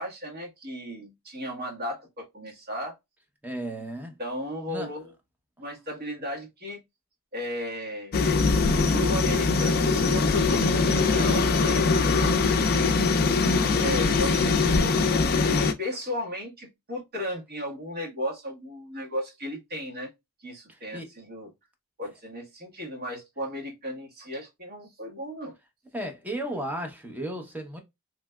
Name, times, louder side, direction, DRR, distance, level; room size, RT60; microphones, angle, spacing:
voice 1, 0.0-2.9 4.2-5.1 5.6-6.8 7.3-8.2 8.9-12.3 13.7-14.9 15.8-20.1 20.4-21.5 22.0-25.5, left 1 dB, 45° right, 1.4 m, -35 dB
voice 2, 3.4-4.1 4.7-4.9 20.7-21.1 25.9-27.8, right 1 dB, 5° right, 0.7 m, -34 dB
sound 1, 8.1-15.7, left 4 dB, 45° left, 0.4 m, -22 dB
3.3 x 2.9 x 2.3 m
head